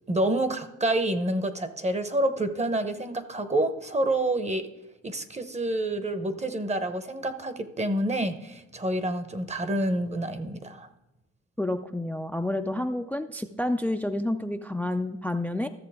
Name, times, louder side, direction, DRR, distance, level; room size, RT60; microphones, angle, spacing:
voice 1, 0.1-4.7 5.0-10.9, right 1 dB, 20° right, 11 dB, 0.8 m, -28 dB
voice 2, 11.6-15.7, left 1 dB, 5° left, 8 dB, 0.4 m, -29 dB
13.5 x 6.8 x 3.5 m, 1.0 s
cardioid pair, 90°, 30 cm